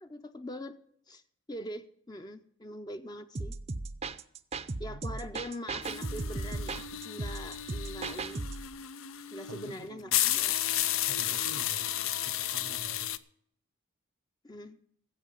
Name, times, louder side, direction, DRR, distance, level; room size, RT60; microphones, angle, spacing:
voice 1, 0.0-0.8 1.1-1.2 1.5-3.6 4.8-8.4 9.3-10.5 14.4-14.8, equal, 20° left, 0.6 m, -43 dB
sound 1, 3.3-8.7, right 3 dB, 30° right, 0.5 m, -37 dB
voice 2, 4.9-5.2 9.5-10.1 11.0-13.1, right 4 dB, 80° right, 0.6 m, -48 dB
sound 2, 5.8-13.2, left 12 dB, 80° left, 0.6 m, -33 dB
13.0 x 8.3 x 7.3 m
head